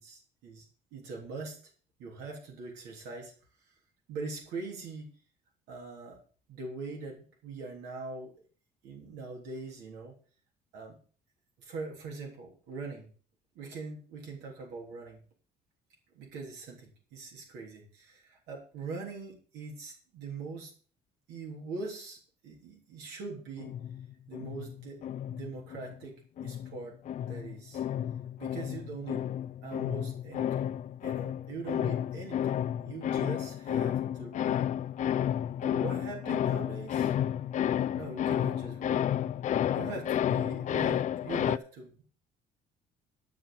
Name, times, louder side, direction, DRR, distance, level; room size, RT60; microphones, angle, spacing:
voice 1, 0.0-1.6 2.0-3.3 4.1-5.1 5.7-6.2 6.5-8.3 8.8-10.2 10.7-11.0 11.6-13.1 13.6-15.2 16.1-20.7 21.3-23.7 24.3-26.1 26.4-27.0 27.3-27.8 28.4-29.2 29.6-34.7 35.6-37.1 37.9-39.1 39.7-42.1, right 4 dB, 90° right, 0 dB, 3.5 m, -42 dB
sound 1, 23.6-26.0 26.4-41.6, left 10 dB, 45° left, 0.4 m, -31 dB
12.0 x 5.8 x 7.2 m, 0.41 s
cardioid pair, 110°, 17 cm